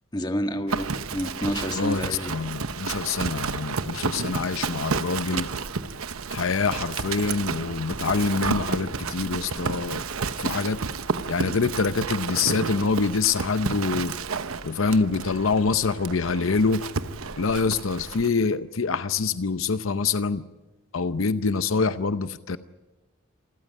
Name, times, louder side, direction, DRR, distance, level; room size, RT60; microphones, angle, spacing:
voice 1, 0.1-2.3, equal, 20° left, 6 dB, 1.6 m, -29 dB
Livestock farm animals working animals, 0.7-18.3, right 4 dB, 85° right, 1.0 m, -31 dB
voice 2, 1.8-5.5 6.3-10.0 10.4-10.8 11.3-14.2 14.6-16.8 17.4-20.4 20.9-22.6, left 4 dB, 70° left, 12 dB, 0.7 m, -25 dB
27.5 x 14.5 x 9.3 m, 1.1 s
head